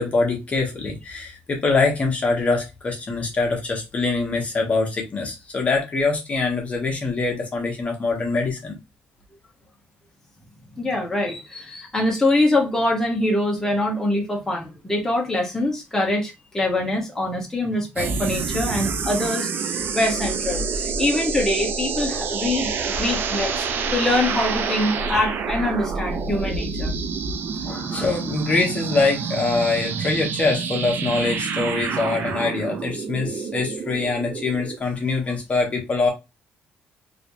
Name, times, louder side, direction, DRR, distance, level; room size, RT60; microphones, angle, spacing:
voice 1, 0.0-8.7 27.6-36.1, left 3 dB, 35° left, 1.1 m, -24 dB
voice 2, 10.7-26.9, left 1 dB, 10° left, 1.2 m, -24 dB
sound 1, 18.0-34.8, right 5 dB, 60° right, 0.6 m, -27 dB
3.1 x 2.9 x 2.7 m
cardioid pair, 100°, 4 cm